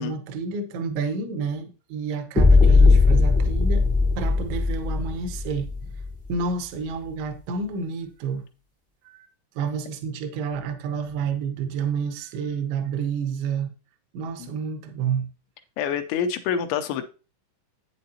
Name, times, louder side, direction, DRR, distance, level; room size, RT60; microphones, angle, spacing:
voice 1, 0.0-3.9 4.2-6.0 6.3-8.5 9.0-9.3 9.6-13.7 14.1-15.3, right 5 dB, 75° right, 3.1 m, -29 dB
sound 1, 2.4-6.4, left 3 dB, 5° left, 0.5 m, -18 dB
voice 2, 15.8-17.0, left 8 dB, 80° left, 2.7 m, -26 dB
8.9 x 7.7 x 2.8 m
omnidirectional pair, 5.7 m